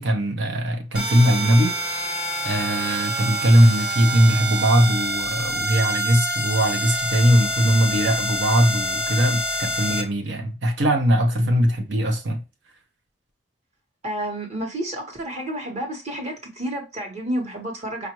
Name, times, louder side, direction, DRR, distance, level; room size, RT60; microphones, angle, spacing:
voice 1, 0.0-1.8 2.4-12.4, equal, 80° right, 0.8 m, -20 dB
sound 1, 0.9-10.0, right 1 dB, 5° right, 0.6 m, -27 dB
voice 2, 14.0-18.1, right 1 dB, 40° right, 1.1 m, -30 dB
4.9 x 2.5 x 2.9 m
head